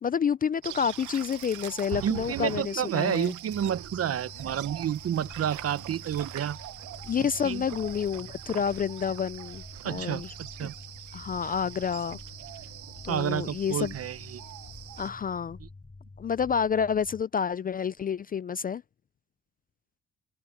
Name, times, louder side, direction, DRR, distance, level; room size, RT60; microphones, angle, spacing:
voice 1, 0.0-3.3 7.1-10.3 11.1-12.2 13.0-13.9 15.0-15.6 16.2-18.8, left 7 dB, 30° left, 0.3 m, -29 dB
sound 1, 0.6-15.1, right 14 dB, 75° right, 1.0 m, -42 dB
voice 2, 2.0-6.6 7.4-7.6 9.8-10.2 10.6-10.7 13.1-14.4, right 9 dB, 50° right, 0.9 m, -30 dB
sound 2, 3.5-17.2, left 3 dB, 15° left, 1.4 m, -48 dB
cardioid pair, 90°, 30 cm